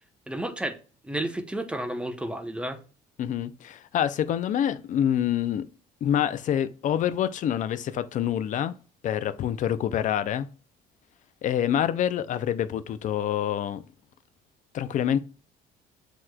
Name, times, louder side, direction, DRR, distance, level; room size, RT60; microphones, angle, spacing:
voice 1, 0.3-0.8 1.0-2.8, right 1 dB, 5° right, 0.6 m, -31 dB
voice 2, 3.2-5.6 6.0-8.7 9.0-10.5 11.4-13.8 14.7-15.2, left 10 dB, 50° left, 0.4 m, -26 dB
7.6 x 3.0 x 2.2 m
cardioid pair, 110°, 17 cm